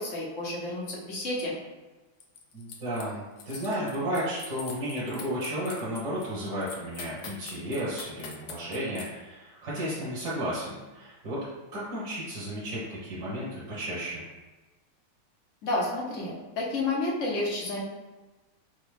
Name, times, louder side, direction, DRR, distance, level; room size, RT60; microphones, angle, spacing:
voice 1, 0.0-1.5 15.6-17.8, left 2 dB, 50° left, -4 dB, 1.0 m, -30 dB
sound 1, 2.2-3.1 3.4-9.1, left 6 dB, 80° left, 0.9 m, -43 dB
voice 2, 2.5-11.4 11.7-14.2, equal, 55° right, -10 dB, 1.9 m, -33 dB
6.2 x 2.4 x 3.4 m, 1.2 s
omnidirectional pair, 2.4 m